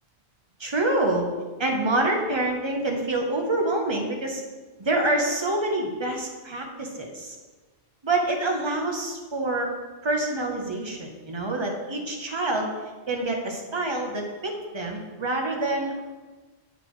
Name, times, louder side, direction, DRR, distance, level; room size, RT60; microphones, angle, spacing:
voice 1, 0.6-1.3 1.6-4.4 4.8-7.4 8.0-9.7 10.0-12.7 13.1-16.0, right 2 dB, 25° right, 1 dB, 0.8 m, -26 dB
8.7 x 4.1 x 3.1 m, 1.3 s
omnidirectional pair, 1.2 m